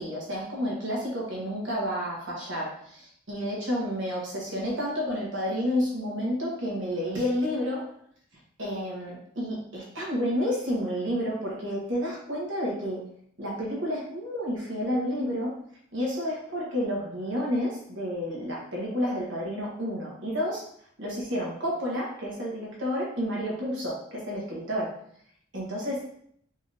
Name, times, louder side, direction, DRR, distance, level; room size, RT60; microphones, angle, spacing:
voice 1, 0.0-7.9 8.6-13.0 13.4-15.5 15.9-20.7 21.0-25.0 25.5-26.3, equal, 65° right, -4 dB, 1.3 m, -30 dB
4.0 x 3.6 x 2.6 m, 0.65 s
head